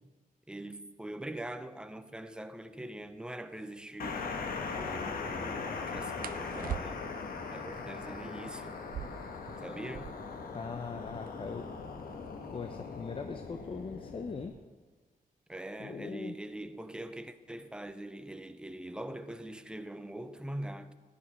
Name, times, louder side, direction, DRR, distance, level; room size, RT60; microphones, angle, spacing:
voice 1, 0.5-4.4 4.7-7.0 7.5-8.8 9.6-10.2 15.5-20.9, right 1 dB, 5° right, 0.6 m, -43 dB
sound 1, 3.5-3.7 6.2-7.3 8.7-10.4 10.7-10.8 11.0-11.6 12.2-14.8 15.8-16.1 16.5-17.0 17.3-18.0, right 10 dB, 80° right, 0.4 m, -44 dB
sound 2, 4.0-14.5, left 4 dB, 90° left, 1.3 m, -40 dB
voice 2, 10.5-11.7 12.5-14.6 15.8-16.4, left 5 dB, 40° left, 0.6 m, -40 dB
15.0 x 10.5 x 4.3 m
wide cardioid pair, 135°, 15 cm